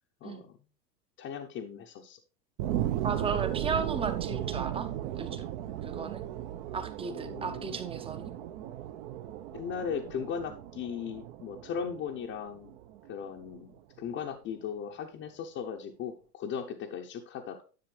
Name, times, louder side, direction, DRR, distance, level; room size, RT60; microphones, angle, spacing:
voice 1, 0.2-0.6 1.2-2.2 7.1-7.8 9.5-12.7 13.1-17.6, left 7 dB, 25° left, 0 dB, 0.8 m, -38 dB
sound 1, 2.6-13.6 14.1-14.2, right 12 dB, 45° right, 0.9 m, -36 dB
voice 2, 3.0-4.9 5.2-5.4 5.8-6.2 6.7-8.3, right 5 dB, 10° right, 9 dB, 0.7 m, -35 dB
10.5 x 7.4 x 3.3 m, 0.36 s
hypercardioid pair, 125°, 48 cm